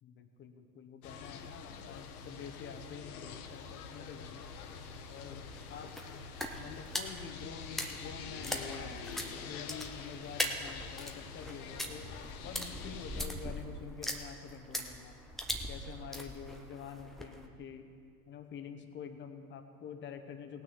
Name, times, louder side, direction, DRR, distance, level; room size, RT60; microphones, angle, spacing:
voice 1, 0.0-4.6 5.1-6.0 6.6-9.0 9.4-12.1 12.4-15.2 15.7-17.9 18.3-20.6, left 7 dB, 25° left, 7 dB, 0.9 m, -47 dB
sound 1, 1.0-13.3, left 6 dB, 65° left, 1.2 m, -46 dB
sound 2, 4.4-17.5, equal, ahead, 0.4 m, -41 dB
17.5 x 6.2 x 6.4 m, 2.3 s
hypercardioid pair, 110°, 48 cm